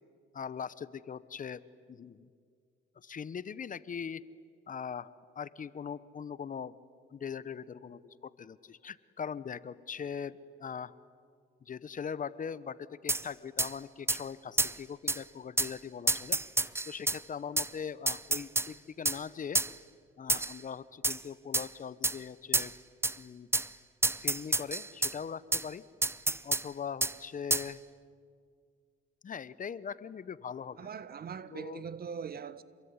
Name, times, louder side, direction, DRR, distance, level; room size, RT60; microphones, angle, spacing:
voice 1, 0.3-1.6 1.9-2.3 3.0-4.2 4.7-5.1 5.4-6.7 7.1-10.9 11.6-16.4 16.9-19.6 20.2-22.7 23.2-23.5 24.2-25.8 26.4-27.8 29.2-30.9 31.5-31.8, left 7 dB, 40° left, 0.9 m, -41 dB
sound 1, 13.1-13.2 13.6-13.7 14.1-14.2 14.6-14.7 15.1-15.2 15.6-15.7 16.1-17.2 17.6-17.7 18.1-18.7 19.1-19.2 19.6-19.7 20.3-20.6 21.0-21.2 21.5-21.7 22.0-22.2 22.5-22.7 23.0-23.2 23.5-23.7 24.0-25.1 25.5-25.6 26.0-26.6 27.0-27.1 27.5-27.7, right 2 dB, 10° right, 0.7 m, -29 dB
voice 2, 30.8-32.6, right 6 dB, 50° right, 1.2 m, -41 dB
27.5 x 22.0 x 9.7 m
cardioid pair, 90°, 20 cm